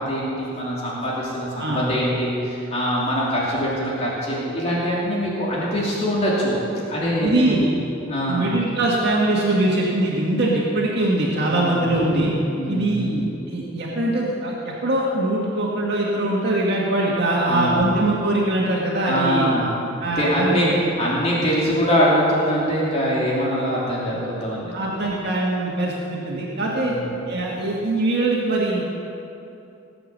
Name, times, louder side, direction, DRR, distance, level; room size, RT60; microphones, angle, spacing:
voice 1, 0.0-6.6 6.9-7.6 8.1-8.5 11.5-11.8 12.5-13.1 17.5-17.9 19.1-19.7 20.1-20.7 21.0-24.8 26.8-27.1, equal, 35° left, -6 dB, 3.1 m, -23 dB
voice 2, 1.6-2.0 7.2-7.9 8.3-12.3 12.7-19.5 20.0-20.8 24.7-26.9 27.3-28.9, right 1 dB, 60° right, -4 dB, 1.9 m, -22 dB
19.5 x 7.9 x 6.8 m, 2.9 s
head